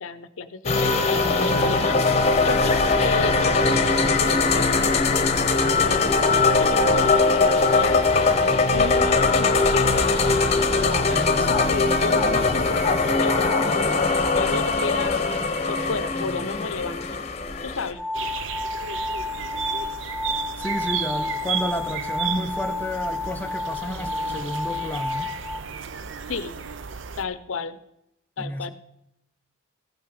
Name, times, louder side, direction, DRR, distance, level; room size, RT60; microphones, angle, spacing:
voice 1, 0.0-5.0 5.8-8.2 8.7-10.0 10.5-14.0 14.3-15.4 15.7-17.0 17.6-18.0 26.3-26.5 27.2-27.8 28.4-28.7, left 4 dB, 80° left, 0.7 m, -32 dB
sound 1, 0.6-17.9, left 3 dB, 30° left, 0.9 m, -21 dB
voice 2, 11.1-11.6 20.6-25.3 28.4-28.7, equal, 10° left, 0.5 m, -31 dB
sound 2, 18.0-25.6, left 3 dB, 20° right, 1.2 m, -31 dB
sound 3, 18.1-27.2, right 7 dB, 65° right, 0.5 m, -33 dB
15.0 x 5.9 x 4.9 m
head